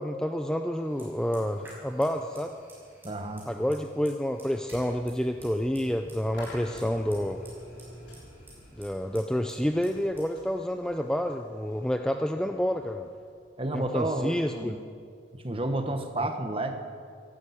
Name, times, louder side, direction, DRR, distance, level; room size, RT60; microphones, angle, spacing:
voice 1, 0.0-2.6 3.5-7.4 8.8-13.1 13.7-14.7, equal, 5° left, 5 dB, 0.4 m, -29 dB
Fire, 0.8-12.6, right 1 dB, 10° right, 5.3 m, -53 dB
voice 2, 3.0-3.5 13.6-14.8 15.3-16.8, right 1 dB, 30° right, 6 dB, 1.1 m, -31 dB
sound 1, 6.3-13.4, left 1 dB, 80° left, 4.2 m, -49 dB
14.0 x 12.0 x 8.4 m, 2.2 s
head